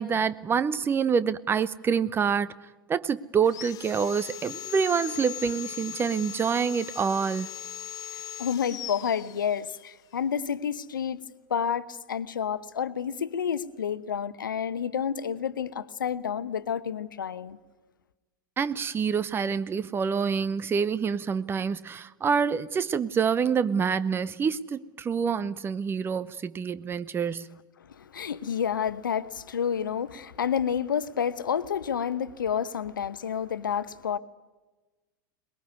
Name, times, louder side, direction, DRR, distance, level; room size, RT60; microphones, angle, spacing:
voice 1, 0.0-2.5 2.9-7.5 18.6-27.5, right 6 dB, 20° right, 0.8 m, -27 dB
Sawing, 3.4-9.9, left 11 dB, 35° left, 0.8 m, -39 dB
voice 2, 8.4-11.2 11.5-17.6 27.9-34.2, left 8 dB, 70° left, 1.0 m, -29 dB
23.0 x 21.0 x 9.5 m
figure-of-eight pair, 85°, 11 cm